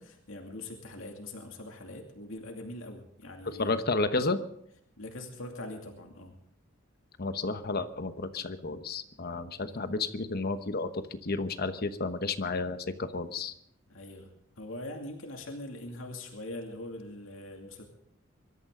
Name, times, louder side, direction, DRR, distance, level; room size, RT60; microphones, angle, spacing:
voice 1, 0.0-3.8 5.0-6.4 9.6-9.8 13.9-14.3 14.6-17.8, left 1 dB, 75° left, 2 dB, 2.5 m, -42 dB
voice 2, 3.6-4.4 7.2-13.5, left 3 dB, 50° left, 9 dB, 1.1 m, -32 dB
24.5 x 13.5 x 3.8 m, 0.70 s
head